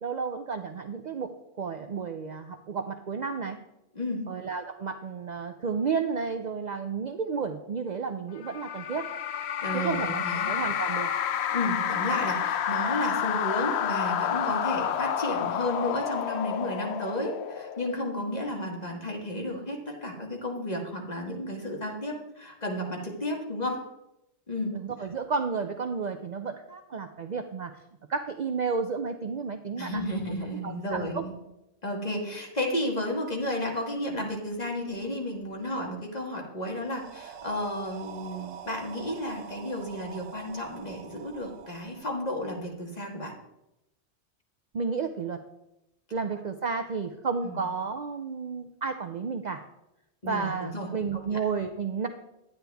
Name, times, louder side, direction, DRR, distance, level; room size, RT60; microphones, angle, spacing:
voice 1, 0.0-3.6 4.3-9.1 9.7-11.1 24.7-27.7 28.1-30.0 30.6-31.3 44.7-45.4 46.1-49.6 50.2-52.1, right 5 dB, 50° right, 7 dB, 0.5 m, -32 dB
sound 1, 8.4-18.1, left 9 dB, 65° left, 0.8 m, -30 dB
voice 2, 9.6-10.5 11.5-23.8 24.5-24.7 29.8-31.3 31.8-43.3 47.4-47.6 50.2-51.4, left 1 dB, 35° left, 1 dB, 1.7 m, -32 dB
sound 2, 36.8-42.7, right 8 dB, 85° right, 1.0 m, -45 dB
10.5 x 9.6 x 3.5 m, 0.89 s
omnidirectional pair, 1.2 m